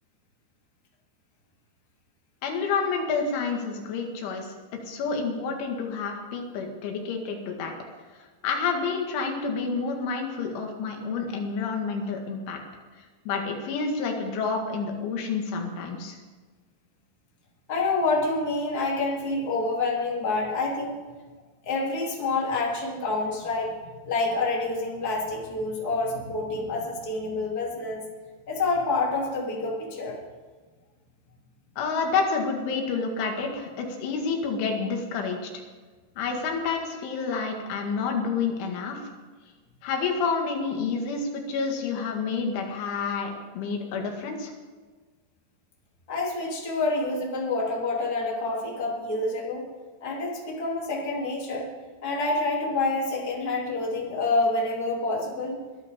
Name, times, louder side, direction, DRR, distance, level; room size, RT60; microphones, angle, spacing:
voice 1, 2.4-4.6 4.9-7.7 8.1-12.6 13.3-16.2 31.8-35.5 36.2-39.1 39.8-44.5, left 5 dB, 90° left, 2 dB, 4.3 m, -29 dB
voice 2, 17.7-21.0 21.6-28.0 28.5-30.2 46.1-49.7 50.0-51.7 52.0-55.6, left 3 dB, 25° left, -3 dB, 2.9 m, -27 dB
22.0 x 12.0 x 3.7 m, 1.4 s
omnidirectional pair, 5.3 m